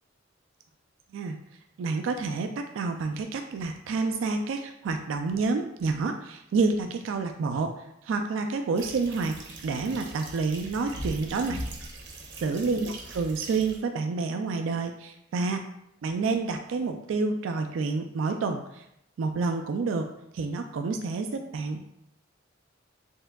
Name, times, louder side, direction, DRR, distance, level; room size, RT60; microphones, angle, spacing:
voice 1, 1.8-7.7 8.0-9.4 9.6-11.6 12.4-15.6 16.0-18.8 19.2-21.9, right 4 dB, 85° right, 6 dB, 0.3 m, -29 dB
sound 1, 8.8-13.8, right 1 dB, 65° right, 0.8 m, -40 dB
4.4 x 3.5 x 2.2 m, 0.81 s
head